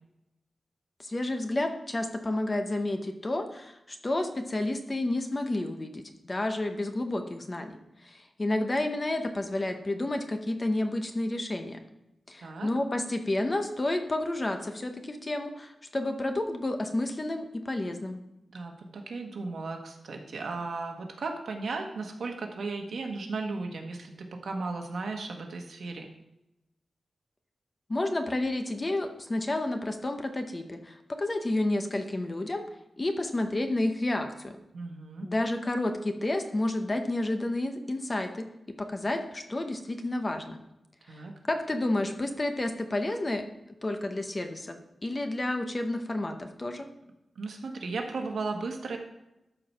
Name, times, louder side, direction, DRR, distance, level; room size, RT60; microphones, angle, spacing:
voice 1, 1.0-11.8 12.3-18.2 27.9-32.7 33.0-34.6 35.2-38.5 38.8-40.6 41.1-43.4 43.8-44.8 45.0-46.9, left 1 dB, 25° left, 6 dB, 0.8 m, -30 dB
voice 2, 18.5-26.1 34.7-35.3 41.1-41.3 47.3-49.0, right 3 dB, 70° right, 3 dB, 1.4 m, -35 dB
12.5 x 4.6 x 5.6 m, 0.92 s
wide cardioid pair, 180°, 0 cm